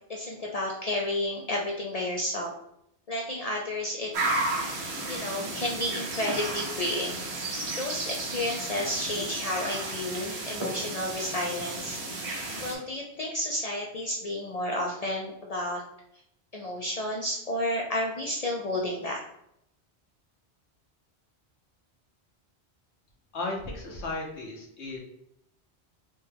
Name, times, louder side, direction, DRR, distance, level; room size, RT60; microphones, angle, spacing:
voice 1, 0.1-2.5 3.1-4.1 4.4-4.6 5.1-7.2 7.8-12.0 12.6-15.8 16.5-19.2, left 1 dB, 55° left, -1 dB, 0.4 m, -31 dB
sound 1, 4.1-12.7, right 2 dB, 75° right, 1.1 m, -33 dB
voice 2, 23.3-25.0, left 2 dB, 85° left, -1 dB, 1.2 m, -35 dB
4.2 x 2.2 x 3.3 m, 0.77 s
omnidirectional pair, 1.1 m